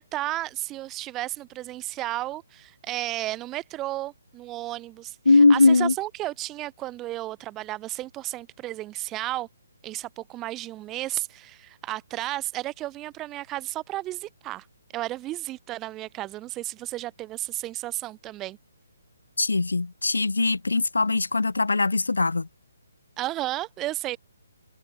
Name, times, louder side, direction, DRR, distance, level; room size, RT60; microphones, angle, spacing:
voice 1, 0.0-9.5 9.8-14.7 14.9-18.6 23.2-24.2, right 16 dB, 15° right, 2.5 m, -33 dB
voice 2, 5.2-5.9 19.4-22.5, left 3 dB, 90° left, 1.3 m, -20 dB
hypercardioid pair, 150°, 0 cm